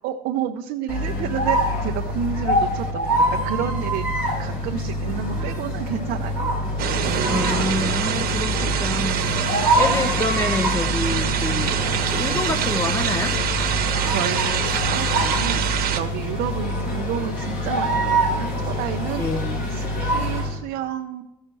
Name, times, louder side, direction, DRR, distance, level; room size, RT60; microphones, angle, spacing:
voice 1, 0.0-4.1 4.4-6.5 9.5-9.7 13.8-15.7 15.9-19.2 19.7-21.2, right 9 dB, 85° right, 2 dB, 0.7 m, -30 dB
sound 1, 0.9-20.6, equal, 70° left, 5.0 m, -25 dB
sound 2, 6.8-16.0, right 8 dB, 65° right, 1.2 m, -25 dB
voice 2, 7.3-9.5 9.8-11.8 12.1-13.3 19.2-19.6, left 2 dB, 15° left, 8 dB, 0.9 m, -27 dB
14.5 x 6.4 x 4.6 m, 0.87 s
cardioid pair, 110°, 17 cm